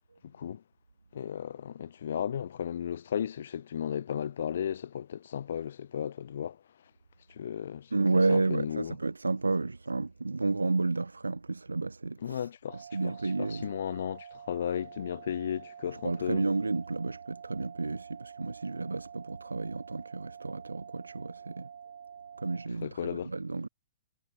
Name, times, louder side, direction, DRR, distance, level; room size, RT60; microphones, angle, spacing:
voice 1, 1.1-6.6 7.3-8.0 8.3-9.0 12.2-16.5 22.8-23.3, left 9 dB, 60° left, 1.4 m, -35 dB
voice 2, 7.9-13.7 15.9-21.7 22.4-23.7, right 3 dB, 85° right, 0.6 m, -31 dB
sound 1, 12.7-22.7, right 8 dB, 65° right, 5.2 m, -48 dB
figure-of-eight pair, 115°, 0 cm